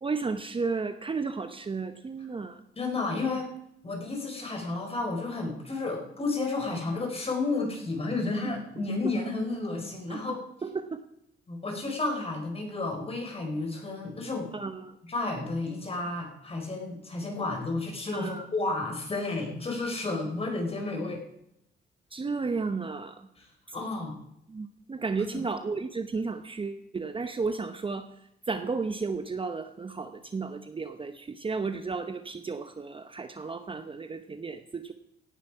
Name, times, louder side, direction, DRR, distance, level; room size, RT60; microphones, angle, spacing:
voice 1, 0.0-2.6 10.1-10.2 10.6-11.0 14.5-15.0 18.1-18.5 22.1-23.3 24.5-28.1 28.5-34.9, right 4 dB, 25° right, 9 dB, 0.9 m, -33 dB
voice 2, 2.8-3.5 3.8-10.4 11.5-14.5 15.0-21.2 23.4-23.5 23.7-24.2 25.3-25.4, left 3 dB, 30° left, 2 dB, 4.7 m, -32 dB
17.0 x 10.5 x 4.9 m, 0.79 s
cardioid pair, 90°, 20 cm